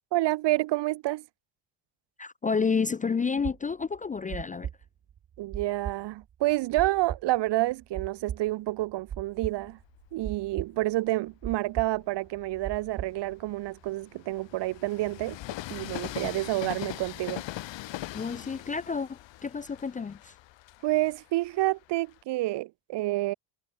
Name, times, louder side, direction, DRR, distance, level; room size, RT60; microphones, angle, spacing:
voice 1, 0.1-1.3 5.4-9.8 10.1-15.4 15.7-17.4 20.8-23.3, right 17 dB, 65° right, 0.7 m, -29 dB
voice 2, 2.2-4.7 18.1-20.3, left 5 dB, 20° left, 0.4 m, -30 dB
sound 1, 3.4-12.0 12.3-13.9, right 9 dB, 40° right, 2.5 m, -38 dB
Train, 9.3-11.0 11.6-22.2, left 15 dB, 75° left, 2.2 m, -42 dB
cardioid pair, 170°, 45 cm